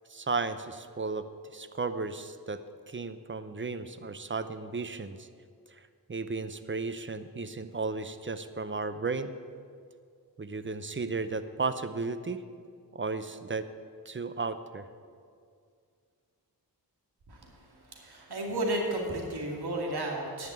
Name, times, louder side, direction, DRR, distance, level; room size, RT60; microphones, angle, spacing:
voice 1, 0.1-1.3 1.5-5.3 5.7-9.3 10.4-12.4 12.9-13.7 14.1-14.8, right 4 dB, 30° right, 12 dB, 0.7 m, -34 dB
voice 2, 17.9-20.5, right 1 dB, 70° right, 0 dB, 2.3 m, -33 dB
10.5 x 5.9 x 8.6 m, 2.2 s
cardioid pair, 50°, 40 cm